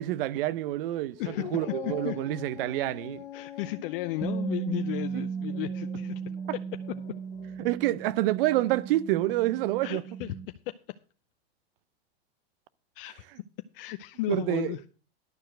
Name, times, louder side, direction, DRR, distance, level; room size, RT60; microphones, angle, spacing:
voice 1, 0.0-3.2 5.1-5.2 7.6-10.0 14.3-14.7, right 15 dB, 60° right, 0.7 m, -28 dB
Dog, 1.1-7.8, left 11 dB, 85° left, 1.2 m, -44 dB
voice 2, 1.2-2.2 3.3-6.2 9.8-10.4 10.7-10.8 13.0-13.2 13.7-14.8, left 16 dB, 60° left, 0.7 m, -34 dB
Bass guitar, 4.2-10.5, right 6 dB, 10° right, 1.0 m, -36 dB
12.0 x 4.6 x 7.6 m
hypercardioid pair, 115°, 32 cm